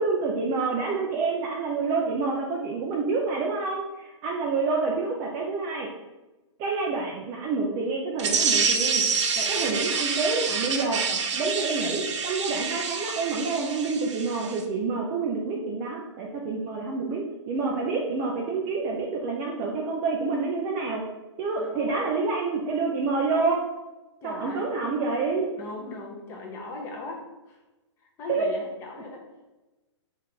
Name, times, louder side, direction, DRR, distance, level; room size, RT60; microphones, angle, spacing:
voice 1, 0.0-5.9 6.6-9.0 9.4-21.0 21.4-23.6 24.2-25.5 28.3-28.5, right 4 dB, 20° right, -1 dB, 0.3 m, -28 dB
sound 1, 8.2-14.6, right 5 dB, 70° right, 0.6 m, -27 dB
voice 2, 21.6-22.0 24.2-24.7 25.6-27.6 28.2-29.2, left 2 dB, 15° left, 0 dB, 0.6 m, -38 dB
4.3 x 2.4 x 3.6 m, 1.1 s
hypercardioid pair, 150°, 16 cm